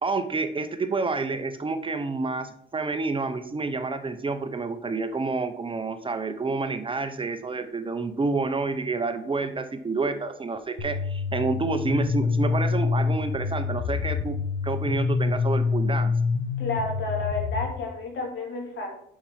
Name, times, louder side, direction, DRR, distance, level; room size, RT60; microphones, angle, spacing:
voice 1, 0.0-14.4 14.6-16.1, right 3 dB, 25° right, 9 dB, 0.7 m, -29 dB
sound 1, 10.8-17.6, left 5 dB, 85° left, 1.1 m, -26 dB
voice 2, 16.6-18.9, left 2 dB, 70° left, 1 dB, 2.5 m, -31 dB
7.4 x 5.6 x 4.7 m, 0.70 s
cardioid pair, 90°, 20 cm